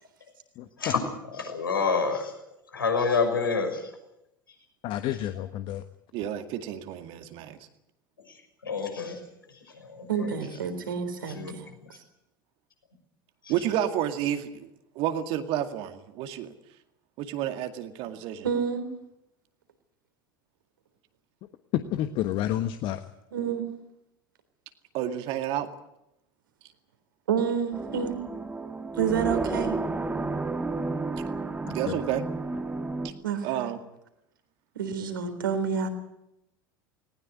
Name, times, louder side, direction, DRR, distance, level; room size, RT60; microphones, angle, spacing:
voice 1, 1.3-2.3 2.7-3.9 8.2-9.2 9.5-10.3 11.3-11.9 13.4-13.5, left 5 dB, 80° left, 4 dB, 6.0 m, -29 dB
voice 2, 4.8-5.8 21.7-23.0 31.6-32.0, left 12 dB, 45° left, 9 dB, 1.3 m, -29 dB
voice 3, 6.1-7.6 10.4-10.5 11.6-11.7 13.5-14.7 15.0-16.5 17.2-18.5 24.9-25.7 31.7-32.2 33.0-33.1 33.4-33.8, right 11 dB, 50° right, 7 dB, 2.2 m, -30 dB
voice 4, 10.1-11.7 18.4-18.9 23.3-23.7 27.3-28.2 28.9-29.8 33.2-33.7 34.8-35.9, right 7 dB, 70° right, 9 dB, 3.7 m, -29 dB
sound 1, 27.7-33.1, right 3 dB, 15° right, 2.0 m, -31 dB
19.5 x 19.5 x 9.7 m, 0.86 s
figure-of-eight pair, 75°, 11 cm